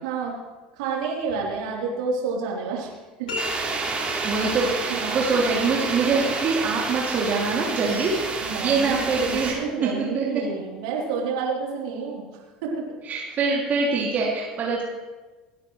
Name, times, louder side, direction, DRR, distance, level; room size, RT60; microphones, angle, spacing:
voice 1, 0.0-0.3 0.7-2.9 3.2-3.3 4.9-5.2 8.4-12.2 12.6-13.0 13.3-13.4, right 5 dB, 65° right, -2 dB, 3.4 m, -29 dB
sound 1, 3.3-4.4, left 3 dB, 75° left, 5.7 m, -34 dB
sound 2, 3.4-9.5, right 3 dB, 25° right, 3.3 m, -29 dB
voice 2, 4.2-9.5 10.1-10.2 13.1-14.8, right 4 dB, 40° right, -4 dB, 2.5 m, -24 dB
27.5 x 9.5 x 3.2 m, 1.2 s
figure-of-eight pair, 65°, 4 cm